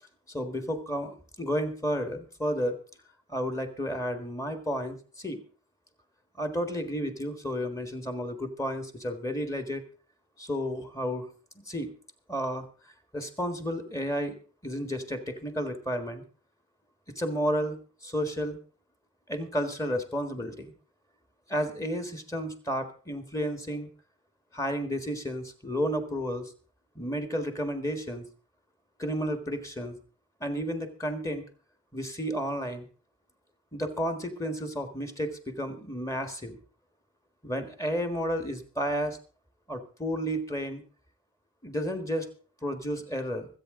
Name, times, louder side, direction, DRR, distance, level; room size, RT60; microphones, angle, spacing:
voice 1, 0.3-2.8 3.3-5.4 6.4-9.8 10.4-11.3 11.7-11.9 12.3-12.7 13.1-14.4 14.6-16.2 17.1-18.6 19.3-20.7 21.5-23.9 24.5-26.5 26.9-28.2 29.0-29.9 30.4-31.4 31.9-32.9 33.7-36.6 37.4-39.2 39.7-40.8 41.6-42.3 42.6-43.5, equal, 15° left, 7 dB, 1.6 m, -32 dB
25.0 x 8.4 x 3.8 m, 0.37 s
head